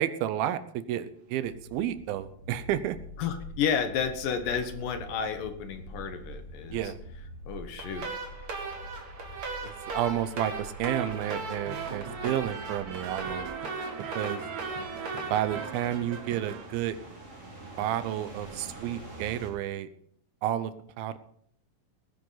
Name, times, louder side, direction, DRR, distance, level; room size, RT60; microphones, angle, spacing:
voice 1, 0.0-3.0 6.7-7.0 9.6-13.5 14.2-14.4 15.3-17.0 17.8-19.9 20.4-21.2, right 11 dB, 85° right, 13 dB, 2.7 m, -31 dB
sound 1, 1.3-19.5, right 1 dB, 20° right, 3.2 m, -46 dB
voice 2, 3.2-6.9 7.5-8.1, left 7 dB, 70° left, 8 dB, 2.8 m, -31 dB
sound 2, 7.8-16.9, right 4 dB, 45° right, 2.6 m, -37 dB
sound 3, 11.1-16.7, right 6 dB, 60° right, 2.4 m, -42 dB
18.0 x 10.5 x 4.0 m, 0.65 s
omnidirectional pair, 4.2 m